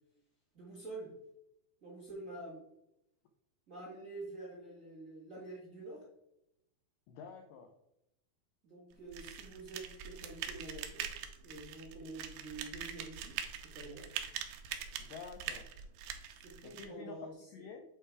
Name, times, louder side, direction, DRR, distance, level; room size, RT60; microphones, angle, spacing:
voice 1, 0.5-1.1 1.8-2.6 3.7-6.0 8.6-11.0 11.4-13.3 13.7-14.0 16.3-17.3, right 2 dB, 35° right, -6 dB, 1.4 m, -47 dB
voice 2, 7.1-7.7 15.0-15.7 16.6-17.8, left 5 dB, 90° left, 5 dB, 1.9 m, -49 dB
sound 1, 9.1-16.9, right 9 dB, 80° right, 2.3 m, -43 dB
8.1 x 3.3 x 4.7 m, 0.84 s
omnidirectional pair, 4.5 m